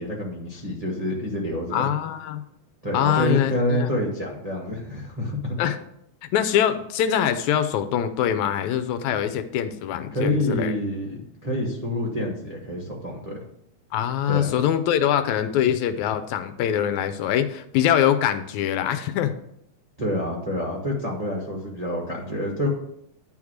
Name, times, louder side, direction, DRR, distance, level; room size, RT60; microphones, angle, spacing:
voice 1, 0.0-1.9 2.8-5.6 10.1-13.4 14.3-14.5 20.0-22.7, left 1 dB, 45° right, -3 dB, 0.4 m, -27 dB
voice 2, 1.7-2.4 2.9-3.9 5.6-5.8 6.2-10.8 13.9-19.3, left 10 dB, 80° left, 10 dB, 1.9 m, -23 dB
10.5 x 3.6 x 6.3 m, 0.73 s
omnidirectional pair, 3.4 m